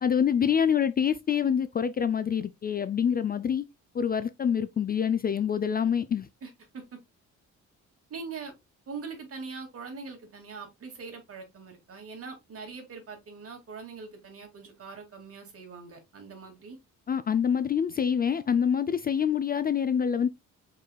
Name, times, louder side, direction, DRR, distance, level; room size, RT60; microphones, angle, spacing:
voice 1, 0.0-3.6 4.0-6.3 17.1-20.3, left 7 dB, 30° left, 0.4 m, -26 dB
voice 2, 6.4-7.0 8.1-8.5 8.9-16.8, right 5 dB, 50° right, 2.0 m, -42 dB
5.3 x 4.1 x 2.2 m
cardioid pair, 90°, 30 cm